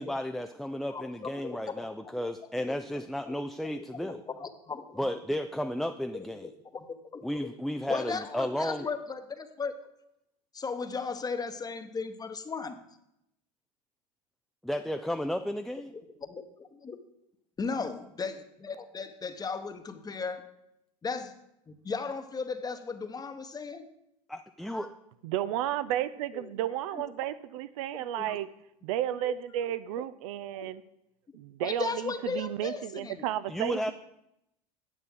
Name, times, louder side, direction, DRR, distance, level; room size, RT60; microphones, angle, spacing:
voice 1, 0.0-4.2 5.0-6.5 7.2-8.9 14.6-15.9 24.3-24.9 33.5-33.9, equal, ahead, 7 dB, 0.3 m, -33 dB
voice 2, 0.9-2.1 2.6-3.3 3.7-5.0 6.1-7.5 7.9-9.7 10.5-12.8 16.2-17.0 17.6-20.4 21.0-21.3 21.7-23.8 26.3-26.5 26.9-27.1 28.2-28.4 29.2-29.3 29.6-29.7 30.5-30.7 31.6-33.2, left 4 dB, 20° left, 9 dB, 1.0 m, -37 dB
voice 3, 25.2-28.5 28.8-30.8 31.3-33.9, right 12 dB, 65° right, 14 dB, 0.5 m, -32 dB
9.4 x 8.0 x 3.7 m, 0.82 s
hypercardioid pair, 80°, 19 cm